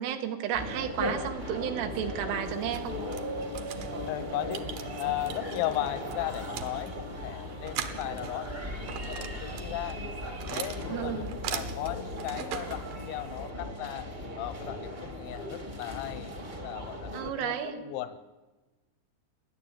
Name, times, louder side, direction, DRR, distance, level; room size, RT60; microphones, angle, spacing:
voice 1, 0.0-3.0 10.9-11.3 17.1-17.8, right 9 dB, 85° right, 6 dB, 4.0 m, -32 dB
sound 1, 0.5-17.3, left 1 dB, 30° right, 0.7 m, -37 dB
sound 2, 2.4-13.5, right 9 dB, 65° right, 2.4 m, -42 dB
voice 2, 4.1-4.7 5.0-10.0 10.5-14.1 14.4-18.2, left 14 dB, 80° left, 12 dB, 2.1 m, -36 dB
30.0 x 11.0 x 9.0 m, 1.2 s
omnidirectional pair, 5.5 m